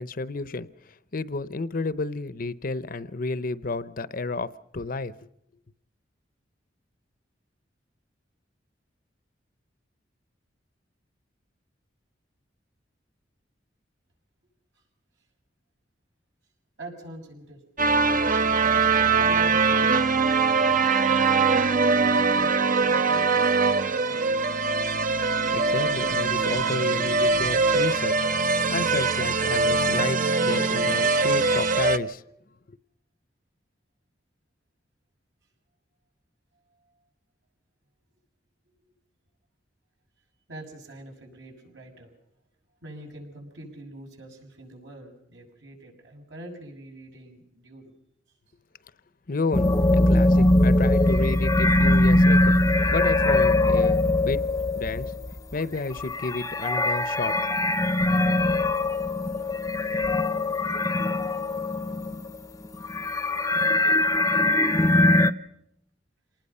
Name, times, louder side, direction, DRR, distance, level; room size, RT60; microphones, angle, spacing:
voice 1, 0.0-5.1 25.2-32.2 32.7-32.8 49.3-54.5 54.7-55.1 55.5-57.4, left 3 dB, 50° left, 0.8 m, -31 dB
voice 2, 16.8-18.0 19.2-21.7 22.1-24.5 40.5-42.1 42.8-47.9 50.1-50.2, right 1 dB, 75° right, 6.9 m, -44 dB
sound 1, 17.8-32.0, right 4 dB, 45° right, 0.9 m, -22 dB
sound 2, 49.5-62.4 62.6-65.3, left 2 dB, 20° left, 0.8 m, -21 dB
27.5 x 19.5 x 5.6 m
head